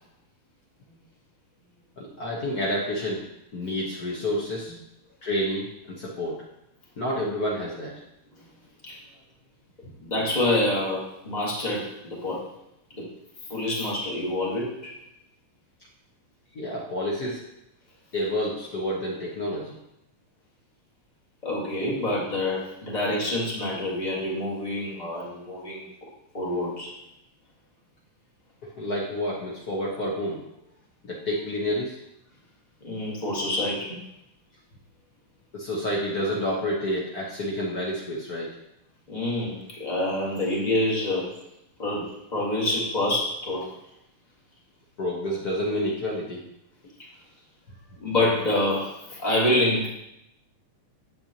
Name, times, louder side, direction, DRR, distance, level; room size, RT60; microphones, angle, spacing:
voice 1, 2.0-3.2 3.5-4.7 5.2-6.4 7.0-7.9 16.5-17.4 18.1-19.8 28.7-30.4 31.0-32.0 35.5-38.6 45.0-46.4, equal, 80° left, -5 dB, 0.8 m, -29 dB
voice 2, 10.0-12.4 12.9-13.1 13.5-14.9 21.4-25.8 26.3-26.9 32.8-34.0 39.1-41.3 41.8-43.7 48.0-49.9, left 1 dB, 20° left, -5 dB, 1.3 m, -27 dB
9.2 x 7.6 x 2.9 m, 0.84 s
omnidirectional pair, 3.5 m